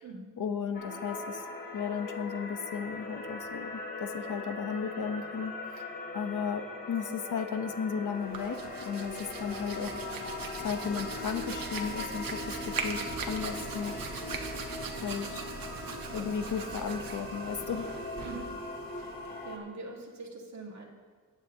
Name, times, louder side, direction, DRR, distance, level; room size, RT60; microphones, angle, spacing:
voice 1, 0.4-1.4 1.7-10.0 10.6-14.2 15.0-15.4 16.1-17.9, left 6 dB, 60° left, 7 dB, 0.8 m, -35 dB
sound 1, 0.7-19.6, left 3 dB, 25° left, 1.4 m, -40 dB
Hands, 8.1-19.6, right 5 dB, 90° right, 1.1 m, -40 dB
voice 2, 19.4-20.9, right 3 dB, 55° right, -1 dB, 1.8 m, -43 dB
18.0 x 9.0 x 2.8 m, 1.5 s
wide cardioid pair, 150°, 34 cm